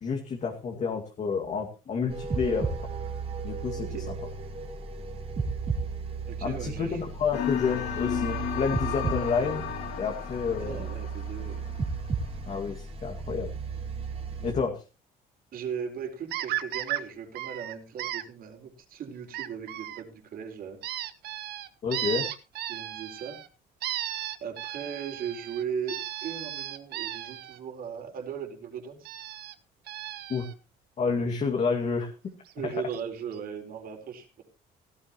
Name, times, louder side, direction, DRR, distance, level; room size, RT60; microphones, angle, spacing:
voice 1, 0.0-2.9 3.4-3.9 6.4-9.6 10.0-10.9 12.5-13.5 14.4-14.8 21.8-22.2 30.3-30.4 31.0-32.1 32.6-32.7, left 5 dB, 45° left, 1 dB, 2.2 m, -29 dB
sound 1, 2.1-14.5, right 4 dB, 35° right, 3.2 m, -34 dB
voice 2, 6.3-7.0 10.6-11.6 14.3-14.5 15.5-20.8 22.7-23.4 24.4-29.1 32.5-34.4, right 7 dB, 60° right, 3 dB, 4.3 m, -37 dB
sound 2, 7.3-12.3, left 10 dB, 90° left, 3.0 m, -34 dB
sound 3, 16.3-17.0 17.4-18.2 19.3-20.0 20.8-23.5 23.8-27.6 29.1-29.5 29.9-30.5 32.5-32.6 32.9-33.0 33.3-33.4, right 13 dB, 75° right, 1.3 m, -35 dB
16.5 x 14.0 x 3.0 m, 0.32 s
cardioid pair, 110°, 17 cm